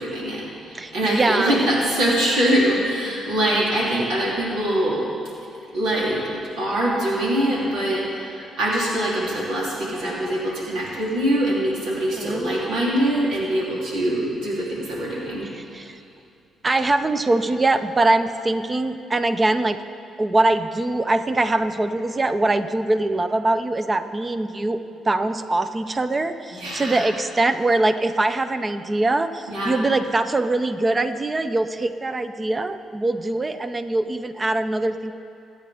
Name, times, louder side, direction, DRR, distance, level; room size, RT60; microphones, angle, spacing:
voice 1, 0.0-5.1 5.7-15.5 26.6-27.1 29.5-29.8, right 1 dB, 85° right, -6 dB, 3.4 m, -23 dB
voice 2, 0.7-1.6 12.1-12.5 15.5-16.0 16.6-19.8 20.2-24.8 25.0-35.1, right 2 dB, 25° right, 10 dB, 0.7 m, -22 dB
24.0 x 8.9 x 3.6 m, 2.6 s
cardioid pair, 90°, 0 cm